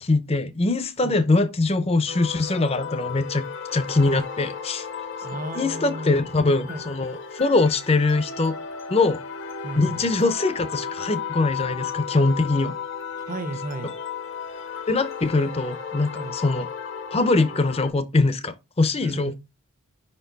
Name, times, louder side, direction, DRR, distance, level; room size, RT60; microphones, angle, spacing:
voice 1, 0.0-3.4 3.7-4.9 5.5-8.5 8.9-9.2 9.8-12.7 14.9-16.7 17.1-19.3, left 3 dB, 30° left, 0.6 m, -22 dB
sound 1, 2.1-17.9, left 6 dB, 60° left, 0.9 m, -34 dB
voice 2, 5.2-6.2 6.7-6.8 9.6-10.1 13.2-13.9 16.1-16.4 19.0-19.3, right 2 dB, 40° right, 0.8 m, -34 dB
5.4 x 4.4 x 3.9 m
head